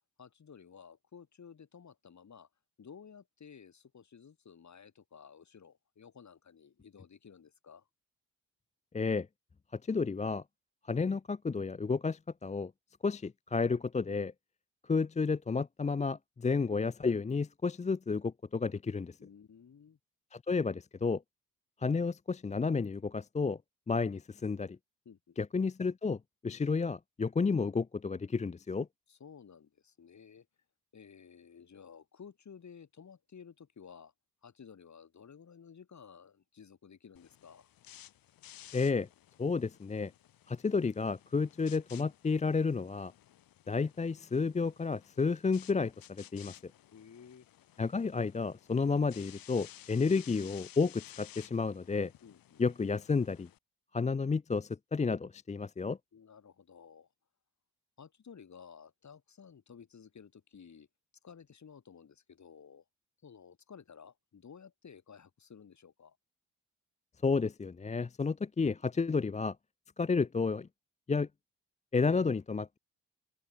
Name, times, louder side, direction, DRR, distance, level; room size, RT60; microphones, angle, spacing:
voice 1, 0.2-2.5 2.8-7.9 19.2-20.0 25.0-25.4 29.1-30.5 30.9-34.1 34.4-37.7 46.9-47.5 52.2-52.6 56.1-57.1 58.0-60.9 61.2-62.8 63.2-66.2, left 6 dB, 50° left, 4.5 m, -54 dB
voice 2, 8.9-9.3 9.9-10.4 10.9-12.7 13.0-14.3 14.9-19.2 20.3-21.2 21.8-23.6 23.9-24.8 25.4-26.2 26.4-28.9 38.7-39.1 39.4-40.1 40.5-43.1 43.7-46.5 47.8-52.1 52.6-53.5 53.9-56.0 67.2-69.6 70.0-70.7 71.1-71.3 71.9-72.8, left 4 dB, 20° left, 0.6 m, -31 dB
sound 1, 37.2-53.6, left 12 dB, 65° left, 2.0 m, -56 dB
hypercardioid pair, 45°, 37 cm